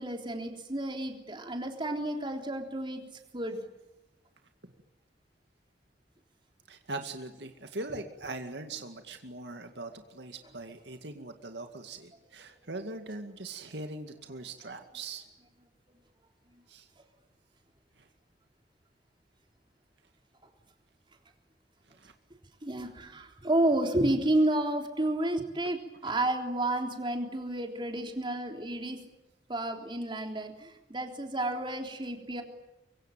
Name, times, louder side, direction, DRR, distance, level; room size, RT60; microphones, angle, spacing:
voice 1, 0.0-3.0 3.3-3.7 16.5-16.6 22.6-29.0 29.5-32.4, right 1 dB, 30° right, 3 dB, 3.6 m, -31 dB
voice 2, 6.7-15.3 16.7-16.9 18.0-18.1 21.9-22.1, right 2 dB, 75° right, 6 dB, 2.2 m, -41 dB
24.5 x 23.5 x 9.1 m, 0.95 s
head